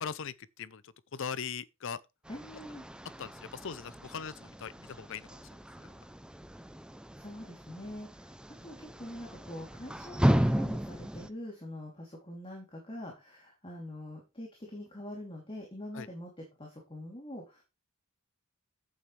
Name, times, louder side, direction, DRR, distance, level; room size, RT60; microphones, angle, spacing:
voice 1, 0.0-2.0 3.2-5.4 5.8-5.9 15.9-16.1, left 6 dB, 60° left, 0.6 m, -40 dB
sound 1, 2.2-11.3, equal, 5° right, 0.5 m, -34 dB
voice 2, 2.3-2.8 7.1-16.3 16.6-17.6, left 1 dB, 25° left, 2.9 m, -44 dB
11.0 x 8.6 x 3.3 m
head